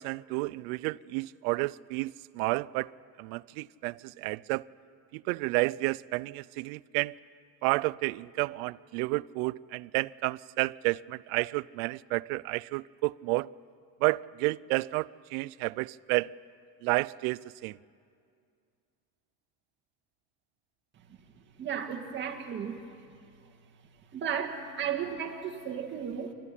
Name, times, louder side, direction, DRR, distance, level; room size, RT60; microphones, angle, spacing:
voice 1, 0.0-4.7 5.1-7.2 7.6-13.5 14.0-16.3 16.8-17.8, right 23 dB, 85° right, 0.5 m, -31 dB
voice 2, 21.6-22.8 24.1-26.3, right 8 dB, 25° right, 1.8 m, -34 dB
26.5 x 13.5 x 10.0 m
cardioid pair, 170°, 41 cm